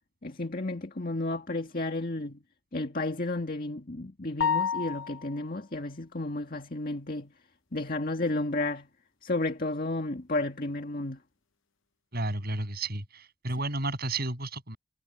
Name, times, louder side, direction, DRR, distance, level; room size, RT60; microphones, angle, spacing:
voice 1, 0.2-2.4 2.7-7.3 7.7-8.9 9.2-11.2, left 2 dB, 40° left, 1.9 m, -32 dB
sound 1, 4.4-5.5, left 6 dB, 65° left, 0.8 m, -29 dB
voice 2, 12.1-14.8, right 2 dB, 45° right, 7.3 m, -32 dB
head